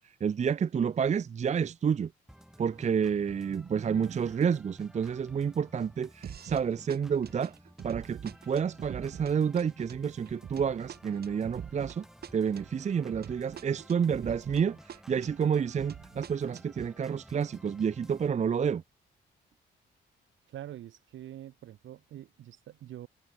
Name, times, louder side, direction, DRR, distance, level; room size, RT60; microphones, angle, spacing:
voice 1, 0.2-2.1 2.6-7.5 7.8-12.1 12.3-18.8, right 7 dB, 35° right, 0.7 m, -29 dB
Organ, 2.3-18.3, equal, ahead, 4.6 m, -54 dB
sound 1, 6.2-6.6 6.9-14.6 14.9-16.9, right 8 dB, 50° right, 1.5 m, -44 dB
voice 2, 20.5-23.1, right 12 dB, 75° right, 3.0 m, -45 dB
cardioid pair, 90°, 20 cm